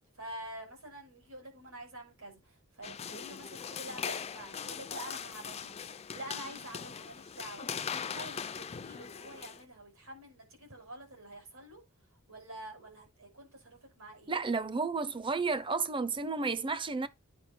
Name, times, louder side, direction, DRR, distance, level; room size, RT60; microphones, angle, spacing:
voice 1, 0.1-7.7 8.0-11.8 12.3-14.4, right 1 dB, 80° right, 6.3 m, -47 dB
sound 1, 2.8-9.6, left 7 dB, 30° left, 0.5 m, -40 dB
voice 2, 14.3-17.1, right 4 dB, 25° right, 0.7 m, -32 dB
9.6 x 5.0 x 4.5 m
head